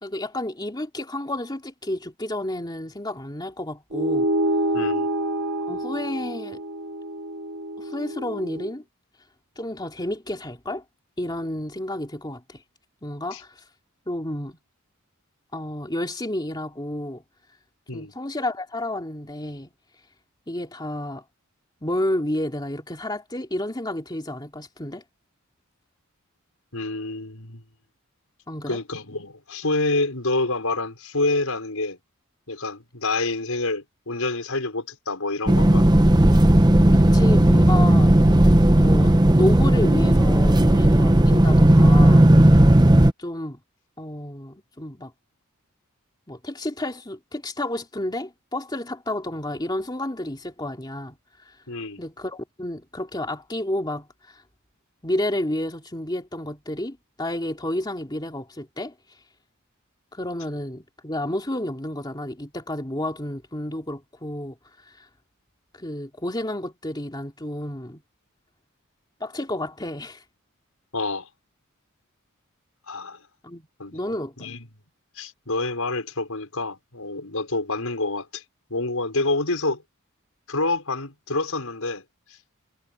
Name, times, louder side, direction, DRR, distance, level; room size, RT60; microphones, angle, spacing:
voice 1, 0.0-4.3 5.7-6.6 7.8-8.8 9.6-10.8 11.2-12.6 13.0-13.6 14.1-14.6 15.5-17.2 17.9-19.7 20.5-21.2 21.8-25.0 28.5-28.8 36.9-38.1 38.7-42.6 43.2-43.6 44.0-45.1 46.3-51.6 52.0-54.4 55.0-58.9 60.1-64.5 64.8-65.1 65.7-68.0 69.2-70.2 73.4-73.7 73.9-74.3, left 1 dB, 20° left, 2.7 m, -31 dB
sound 1, 3.9-8.7, right 1 dB, 75° right, 2.2 m, -27 dB
voice 2, 4.7-5.1 13.3-13.4 17.9-18.1 26.7-27.6 28.7-32.0 32.5-35.9 51.7-52.0 70.9-71.3 72.9-73.2 73.8-74.0 74.4-74.6 75.2-78.4 78.7-79.8 80.5-82.0, left 2 dB, 90° left, 5.7 m, -27 dB
sound 2, 35.5-43.1, right 1 dB, 20° right, 0.9 m, -15 dB
head